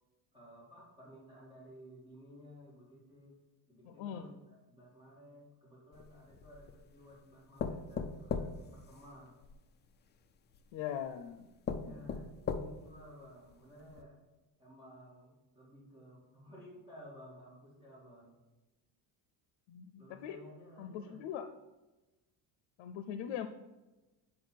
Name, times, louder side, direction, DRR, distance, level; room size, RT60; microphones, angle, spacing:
voice 1, 0.3-3.4 3.7-9.3 11.8-14.2 14.6-18.4 20.0-21.2, equal, 10° right, -6 dB, 2.3 m, -55 dB
voice 2, 3.8-4.3 10.7-11.5 11.8-12.1 19.7-20.4 20.8-21.5 22.8-23.5, left 9 dB, 85° left, 10 dB, 0.7 m, -41 dB
sound 1, 5.9-6.8 7.6-9.6 10.5-10.6 11.2-11.3 11.7-13.0 13.5-13.6 13.9-14.0, left 5 dB, 25° left, 0.4 m, -38 dB
8.5 x 5.4 x 4.5 m, 1.1 s
cardioid pair, 160°, 43 cm